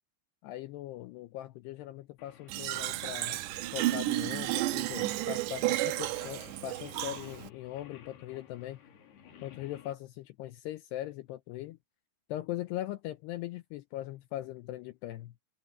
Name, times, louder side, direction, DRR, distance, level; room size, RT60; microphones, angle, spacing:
voice 1, 0.4-3.4 3.7-8.8 9.4-11.8 12.3-15.3, left 14 dB, 85° left, 2.5 m, -40 dB
Singing, 2.2-9.9, left 9 dB, 60° left, 4.4 m, -55 dB
Fill (with liquid), 2.5-7.5, right 17 dB, 75° right, 2.8 m, -32 dB
omnidirectional pair, 5.4 m